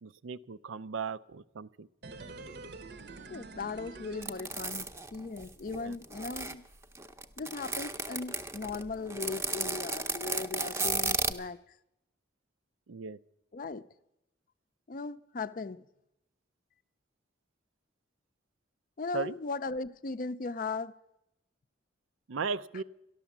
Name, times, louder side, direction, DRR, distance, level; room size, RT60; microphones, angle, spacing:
voice 1, 0.0-1.9 5.7-6.0 12.9-13.2 19.1-19.3 22.3-22.8, right 5 dB, 85° right, 0.5 m, -37 dB
sound 1, 2.0-5.1 5.4-5.5, right 3 dB, 55° right, 0.8 m, -47 dB
voice 2, 3.3-4.9 5.1-6.6 7.4-11.6 13.5-13.9 14.9-15.8 19.0-20.9, left 4 dB, 45° left, 0.5 m, -38 dB
sound 2, 4.2-6.5 7.0-11.3, right 3 dB, 15° right, 0.6 m, -34 dB
13.0 x 11.5 x 7.2 m
head